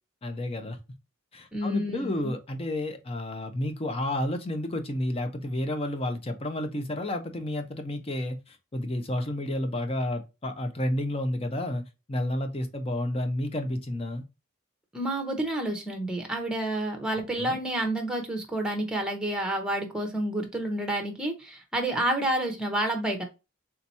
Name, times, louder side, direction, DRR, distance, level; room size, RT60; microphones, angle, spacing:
voice 1, 0.2-0.8 1.3-11.8 12.1-14.2 17.4-17.6, left 1 dB, 30° left, 0.6 m, -31 dB
voice 2, 1.5-2.3 14.9-23.2, right 1 dB, 5° right, 0.8 m, -29 dB
3.5 x 2.9 x 4.0 m
head